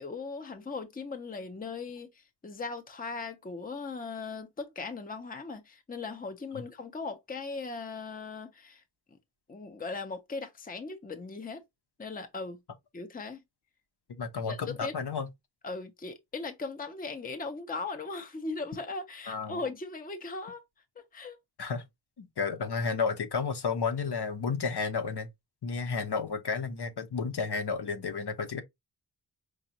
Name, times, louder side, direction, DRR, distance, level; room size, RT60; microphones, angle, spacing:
voice 1, 0.0-8.8 9.5-11.6 12.0-12.6 12.9-13.4 14.5-14.9 15.6-20.6 21.0-21.4, left 3 dB, 20° left, 0.7 m, -38 dB
voice 2, 14.2-15.3 19.3-19.6 21.6-21.8 22.2-25.3 25.6-28.6, left 5 dB, 55° left, 0.9 m, -32 dB
5.0 x 2.4 x 2.8 m
cardioid pair, 65°, 48 cm